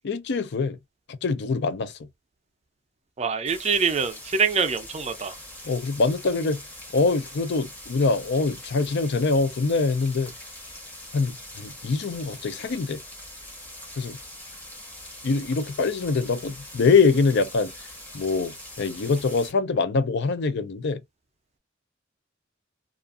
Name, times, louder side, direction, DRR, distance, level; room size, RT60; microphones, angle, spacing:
voice 1, 0.0-0.8 1.2-2.0 5.7-6.6 6.9-10.3 11.1-13.0 14.0-14.2 15.2-17.7 18.1-21.0, left 4 dB, 60° left, 0.5 m, -24 dB
voice 2, 3.2-5.3, right 5 dB, 35° right, 0.4 m, -25 dB
sound 1, 3.5-19.5, left 1 dB, 10° left, 0.9 m, -43 dB
2.4 x 2.4 x 2.4 m
head